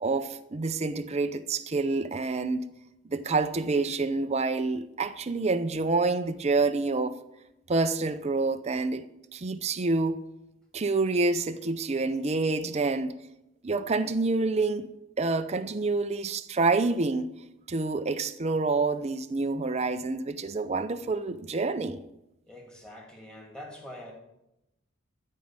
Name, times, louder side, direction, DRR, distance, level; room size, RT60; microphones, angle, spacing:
voice 1, 0.0-2.6 3.1-7.2 7.7-9.0 9.3-10.2 10.7-13.1 13.6-14.9 15.2-17.3 17.7-22.0, right 3 dB, 30° right, 0.5 m, -27 dB
voice 2, 22.5-24.1, left 1 dB, 5° left, 2.6 m, -44 dB
13.0 x 5.4 x 8.8 m
head